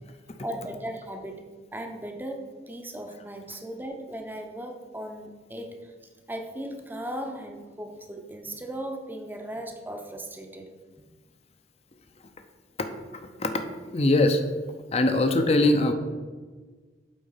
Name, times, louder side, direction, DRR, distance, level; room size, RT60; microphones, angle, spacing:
voice 1, 0.4-5.9 6.3-10.7, right 1 dB, 10° right, 4 dB, 0.7 m, -37 dB
voice 2, 13.9-14.4 14.9-15.9, left 2 dB, 35° left, 7 dB, 0.6 m, -21 dB
8.6 x 4.1 x 5.6 m, 1.4 s
head